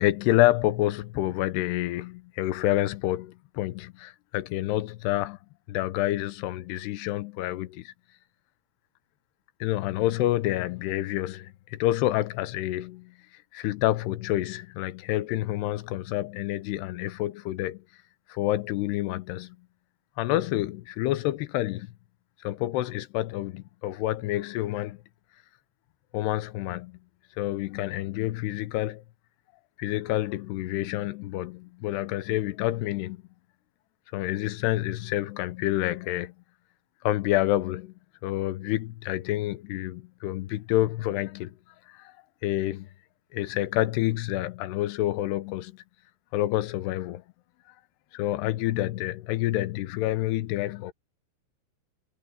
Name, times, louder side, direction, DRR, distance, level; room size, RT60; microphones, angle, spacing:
voice 1, 0.0-5.4 5.7-7.9 9.6-17.8 18.3-19.6 20.2-21.9 22.4-25.0 26.1-27.0 27.4-29.0 29.8-33.2 34.1-36.3 37.0-37.9 38.2-41.6 41.9-42.1 42.4-42.9 43.3-45.8 46.3-47.2 48.1-50.9, left 15 dB, 85° left, 2.9 m, -28 dB
omnidirectional pair, 4.7 m